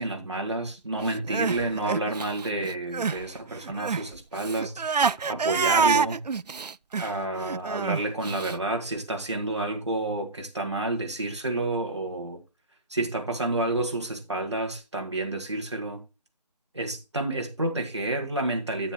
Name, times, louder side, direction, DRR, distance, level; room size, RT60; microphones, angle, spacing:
voice 1, 0.0-6.2 7.0-12.4 12.9-16.0 16.7-18.9, right 2 dB, 40° right, 1.8 m, -30 dB
Crying sobbing, 1.1-3.2 3.5-8.6, right 5 dB, 75° right, 0.4 m, -27 dB
9.6 x 9.0 x 3.0 m
figure-of-eight pair, 175°, 21 cm